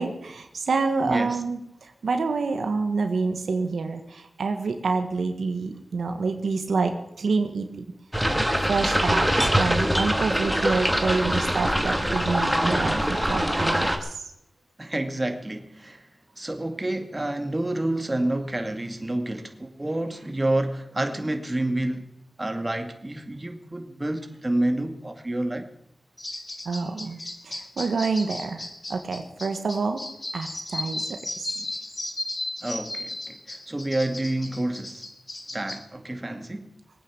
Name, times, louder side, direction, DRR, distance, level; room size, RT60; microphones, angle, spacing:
voice 1, 0.0-6.9 7.2-7.8 8.6-14.2 26.6-28.6 28.9-30.0 30.3-31.5, right 4 dB, 90° right, 6 dB, 1.5 m, -27 dB
voice 2, 1.0-1.4 14.8-16.1 16.4-22.1 22.4-25.7 31.6-31.7 32.6-35.0 35.5-36.7, right 1 dB, 25° right, 5 dB, 2.3 m, -29 dB
sound 1, 8.1-14.0, equal, ahead, 2.1 m, -23 dB
sound 2, 26.2-35.8, left 2 dB, 35° left, 2.3 m, -35 dB
21.0 x 9.1 x 7.2 m, 0.80 s
cardioid pair, 55°, 0 cm